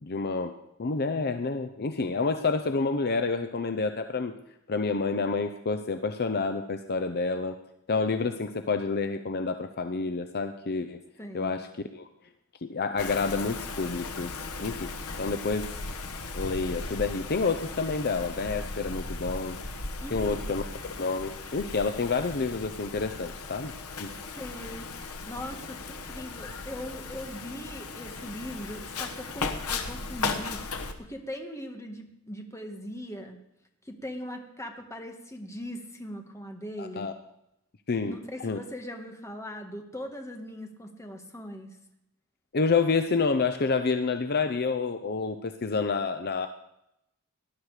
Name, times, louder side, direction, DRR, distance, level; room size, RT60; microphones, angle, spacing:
voice 1, 0.0-4.3 4.7-7.6 7.9-11.0 11.3-11.7 11.9-12.1 12.6-14.9 15.2-15.8 16.3-19.6 20.1-20.6 20.9-24.1 36.8-37.1 37.9-38.6 42.5-46.5, left 4 dB, 45° left, 8 dB, 0.7 m, -29 dB
voice 2, 11.2-11.7 20.0-20.5 24.2-33.4 33.8-37.1 38.0-41.8, equal, 15° left, 3 dB, 1.8 m, -40 dB
Wind, 13.0-30.9, left 3 dB, 80° left, 1.4 m, -37 dB
19.0 x 11.0 x 5.0 m, 0.83 s
head